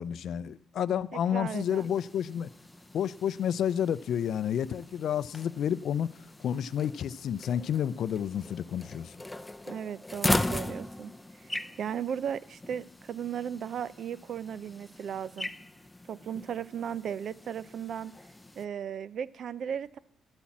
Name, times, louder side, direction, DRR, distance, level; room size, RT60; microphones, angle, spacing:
voice 1, 0.0-2.5 2.9-9.1, left 9 dB, 65° left, 0.4 m, -30 dB
voice 2, 1.1-1.9 9.7-15.5 16.1-18.2 18.6-20.0, right 8 dB, 60° right, 0.5 m, -36 dB
sound 1, 1.6-18.6, left 1 dB, 10° left, 0.6 m, -39 dB
11.5 x 8.6 x 7.3 m
cardioid pair, 90°, 0 cm